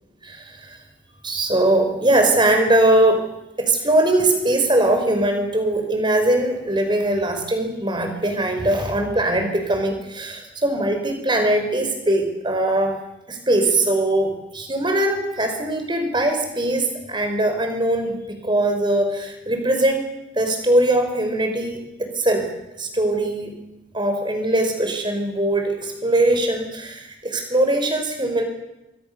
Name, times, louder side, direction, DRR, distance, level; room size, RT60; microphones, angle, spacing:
voice 1, 0.2-0.8 1.2-3.3 3.6-13.0 13.3-20.1 20.3-22.5 22.8-23.5 23.9-28.4, right 1 dB, 25° right, 5 dB, 5.2 m, -21 dB
28.0 x 23.5 x 6.9 m, 0.94 s
head